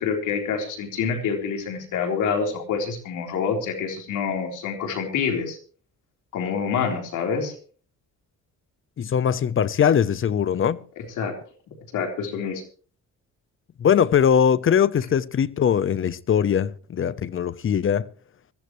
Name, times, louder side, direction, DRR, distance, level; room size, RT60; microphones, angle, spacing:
voice 1, 0.0-5.6 6.3-7.5 11.2-11.4 11.9-12.6, left 6 dB, 80° left, 4.1 m, -26 dB
voice 2, 9.0-10.8 13.8-18.1, left 8 dB, 45° left, 0.8 m, -21 dB
21.5 x 14.5 x 3.2 m
cardioid pair, 90°, 30 cm